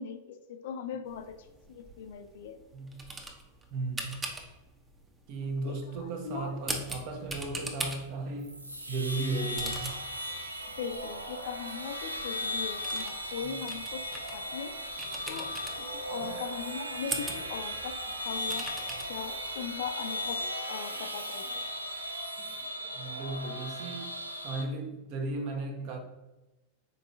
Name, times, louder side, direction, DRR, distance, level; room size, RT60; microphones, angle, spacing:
voice 1, 0.0-2.6 5.6-6.5 10.8-14.8 15.3-18.7 19.1-21.5, left 7 dB, 55° left, 0.4 m, -40 dB
sound 1, 1.1-19.9, right 2 dB, 15° right, 0.7 m, -43 dB
voice 2, 2.7-3.0 3.7-4.3 5.3-8.5 8.9-10.0 15.2-15.4 16.2-16.3 16.6-16.7 21.0-21.1 21.5-21.6 22.4-24.1 24.4-26.0, right 3 dB, 45° right, 0.8 m, -36 dB
sound 2, 8.4-24.6, equal, 85° right, 0.5 m, -37 dB
5.2 x 4.1 x 2.4 m
figure-of-eight pair, 90°, 0 cm